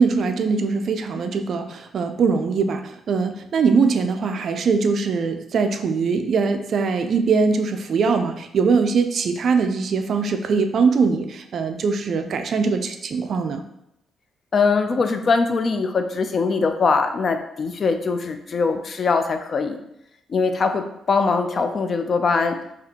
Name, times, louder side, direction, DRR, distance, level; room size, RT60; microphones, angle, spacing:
voice 1, 0.0-13.6, right 5 dB, 50° right, 7 dB, 0.3 m, -21 dB
voice 2, 14.5-19.8 20.3-22.6, left 4 dB, 40° left, 7 dB, 0.3 m, -22 dB
4.1 x 2.8 x 2.8 m, 0.80 s
cardioid pair, 145°, 0 cm